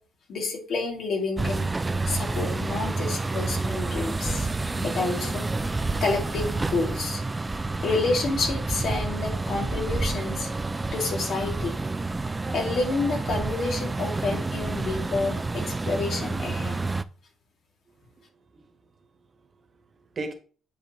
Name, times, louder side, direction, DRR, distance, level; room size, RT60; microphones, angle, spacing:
voice 1, 0.3-1.7 2.1-4.5 4.8-5.4 6.0-7.2 7.8-10.5 10.9-11.7 12.5-16.8, left 3 dB, 65° left, 2.3 m, -29 dB
sound 1, 1.4-17.0, right 3 dB, 20° right, 0.4 m, -29 dB
voice 2, 17.9-20.3, right 3 dB, 40° right, 1.4 m, -41 dB
9.0 x 4.7 x 3.0 m
cardioid pair, 90°, 0 cm